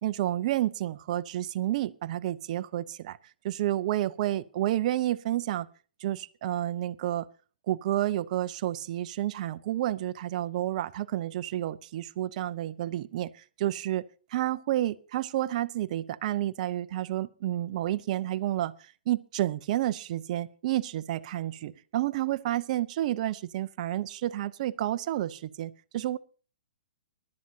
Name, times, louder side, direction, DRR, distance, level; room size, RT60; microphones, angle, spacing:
voice 1, 0.0-3.2 3.4-5.7 6.0-7.3 7.7-14.0 14.3-26.2, right 13 dB, 45° right, 0.7 m, -30 dB
23.5 x 11.5 x 2.8 m
figure-of-eight pair, 125°, 5 cm